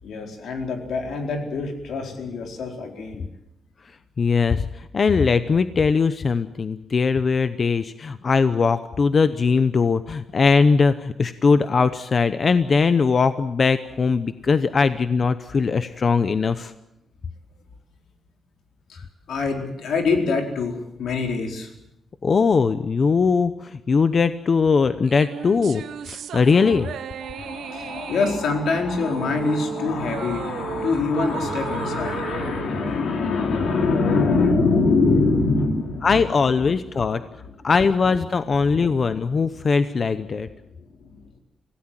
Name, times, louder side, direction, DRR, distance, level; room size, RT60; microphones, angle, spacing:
voice 1, 0.0-3.3 18.9-21.7 25.4-25.5 26.5-26.9 27.2-36.3 37.0-37.5 41.0-41.2, left 3 dB, 85° left, 3 dB, 4.3 m, -24 dB
voice 2, 4.2-16.7 22.2-26.9 33.9-34.1 36.0-37.2 37.6-40.5, left 5 dB, 40° left, 12 dB, 0.8 m, -20 dB
sound 1, 25.1-33.7, right 8 dB, 85° right, 1.0 m, -35 dB
26.0 x 17.5 x 7.6 m, 0.83 s
wide cardioid pair, 155°, 0 cm